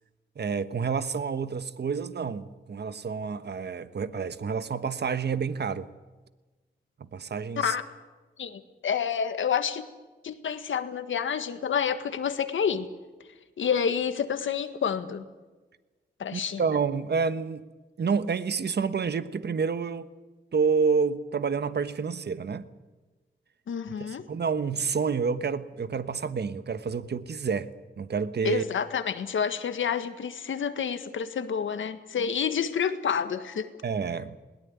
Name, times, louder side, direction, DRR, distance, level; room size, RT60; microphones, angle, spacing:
voice 1, 0.4-5.9 7.1-7.7 16.3-17.7 18.0-20.1 20.5-22.7 24.0-27.7 28.0-28.6 33.8-34.4, right 5 dB, 60° right, 1.2 m, -29 dB
voice 2, 8.4-9.8 10.2-12.9 13.6-15.3 16.2-16.6 23.7-24.3 28.4-33.7, left 7 dB, 80° left, 1.7 m, -29 dB
21.0 x 18.0 x 9.5 m
cardioid pair, 55°, 20 cm